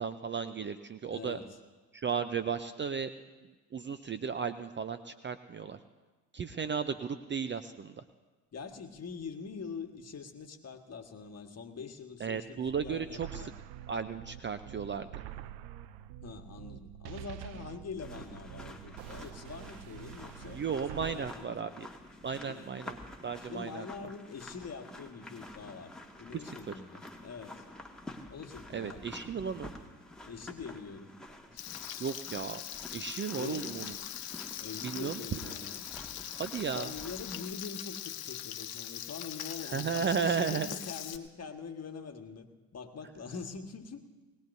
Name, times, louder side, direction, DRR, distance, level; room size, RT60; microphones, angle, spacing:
voice 1, 0.0-1.4 1.9-3.1 3.7-5.8 6.3-8.0 12.2-13.5 13.9-15.1 20.5-21.9 22.2-23.0 23.2-23.8 28.7-29.7 32.0-32.6 32.9-34.0 34.8-35.2 36.3-36.9 39.7-40.7, right 6 dB, 25° right, 11 dB, 0.6 m, -34 dB
voice 2, 1.1-1.5 8.5-13.5 15.3-15.6 16.2-20.6 20.9-21.8 22.4-22.7 23.5-27.6 28.3-29.1 30.2-31.1 31.5-31.9 33.3-33.9 34.6-35.9 36.7-42.5 42.7-44.0, left 5 dB, 35° left, 5 dB, 1.7 m, -44 dB
sound 1, 12.6-21.3, right 12 dB, 60° right, 0.7 m, -46 dB
sound 2, 18.0-37.5, left 1 dB, ahead, 2.0 m, -49 dB
Frying (food), 31.6-41.2, left 11 dB, 55° left, 1.1 m, -41 dB
21.0 x 18.5 x 2.7 m, 1.2 s
hypercardioid pair, 70°, 45 cm